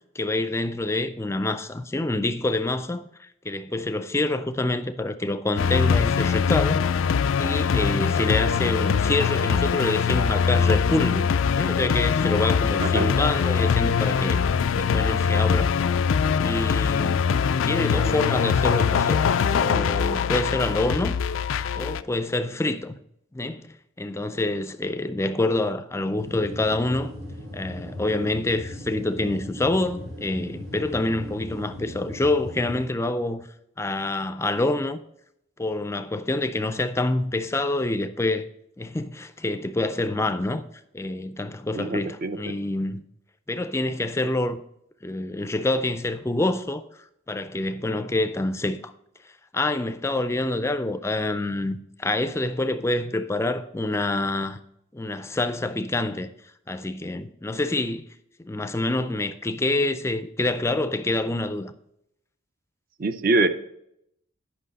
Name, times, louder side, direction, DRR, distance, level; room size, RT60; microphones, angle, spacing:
voice 1, 0.2-6.8 7.4-11.3 11.6-14.4 14.7-15.7 16.4-17.3 17.6-21.1 21.7-22.9 23.3-27.1 27.5-33.5 33.8-35.0 35.6-38.5 38.8-40.6 40.9-43.0 43.5-44.6 45.0-46.8 47.3-48.8 49.5-54.6 54.9-56.3 56.7-58.1 58.4-61.7, left 2 dB, 15° left, 0.4 m, -26 dB
sound 1, 5.6-22.0, left 6 dB, 80° left, 0.4 m, -22 dB
voice 2, 12.8-13.1 18.0-18.4 41.7-42.5 63.0-63.5, right 2 dB, 45° right, 0.6 m, -25 dB
sound 2, 26.2-32.9, left 1 dB, 85° right, 1.5 m, -38 dB
10.0 x 5.7 x 4.1 m
head